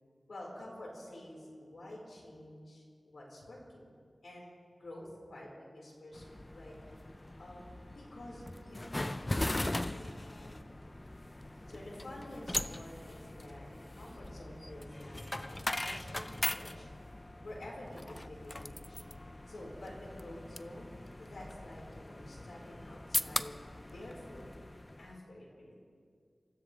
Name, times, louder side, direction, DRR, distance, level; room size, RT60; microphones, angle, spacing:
voice 1, 0.3-3.8 4.2-4.5 4.8-6.2 6.5-6.7 7.4-10.9 11.7-16.9 17.4-19.0 19.5-24.4 25.0-25.8, left 1 dB, 85° left, -3 dB, 5.0 m, -49 dB
sound 1, 6.1-25.2, left 1 dB, 25° left, 0.5 m, -40 dB
27.5 x 15.0 x 3.5 m, 2.1 s
wide cardioid pair, 60°, 0 cm